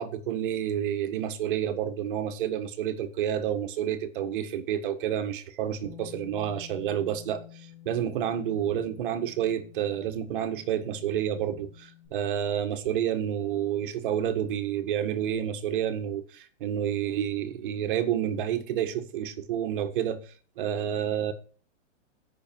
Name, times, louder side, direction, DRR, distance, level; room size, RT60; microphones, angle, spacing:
voice 1, 0.0-7.4 7.8-20.2 20.6-21.3, right 10 dB, 45° right, 1.7 m, -29 dB
Bass guitar, 5.8-12.1, left 11 dB, ahead, 5.9 m, -50 dB
16.5 x 6.7 x 4.7 m
hypercardioid pair, 165°, 38 cm